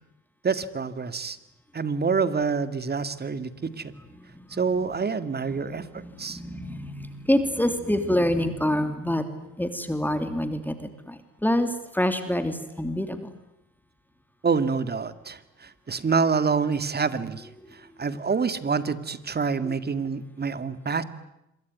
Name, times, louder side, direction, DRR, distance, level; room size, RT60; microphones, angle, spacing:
voice 1, 0.4-1.4 1.7-3.9 4.5-6.4 14.4-17.5 18.0-21.0, right 5 dB, 35° right, 12 dB, 2.1 m, -27 dB
voice 2, 4.2-4.5 4.8-4.9 5.5-9.3 9.6-13.3 19.6-19.7, left 1 dB, 5° left, 8 dB, 3.0 m, -27 dB
26.5 x 23.5 x 9.5 m, 0.88 s
cardioid pair, 90°, 30 cm